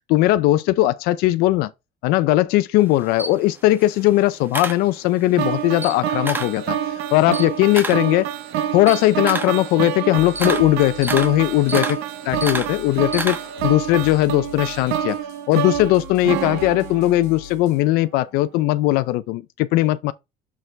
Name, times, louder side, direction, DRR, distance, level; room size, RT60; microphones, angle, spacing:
voice 1, 0.1-1.7 2.0-8.3 8.7-12.0 12.3-13.4 13.6-15.2 15.5-20.1, left 16 dB, 70° left, 0.5 m, -19 dB
Camera, 2.8-5.4 5.7-6.6 7.0-13.7, right 3 dB, 10° right, 1.0 m, -30 dB
sound 1, 5.4-17.6, right 10 dB, 75° right, 0.9 m, -27 dB
sound 2, 10.2-17.9, left 11 dB, 90° left, 1.4 m, -42 dB
6.7 x 6.0 x 3.3 m
cardioid pair, 170°, 16 cm